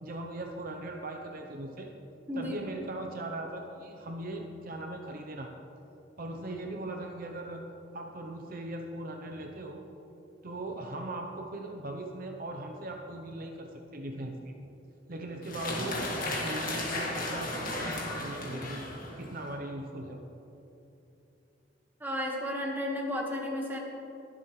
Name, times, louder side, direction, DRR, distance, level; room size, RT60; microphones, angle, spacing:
voice 1, 0.0-1.9 2.3-5.5 6.2-7.6 7.9-9.8 10.4-14.6 15.1-16.0 16.4-17.9 18.2-18.9 19.2-20.2, right 1 dB, 50° right, 3 dB, 0.7 m, -39 dB
voice 2, 2.3-2.6 22.0-23.8, left 1 dB, 10° right, -2 dB, 1.5 m, -33 dB
sound 1, 15.4-19.5, left 1 dB, 50° left, 1.8 m, -35 dB
21.5 x 7.5 x 3.2 m, 2.9 s
head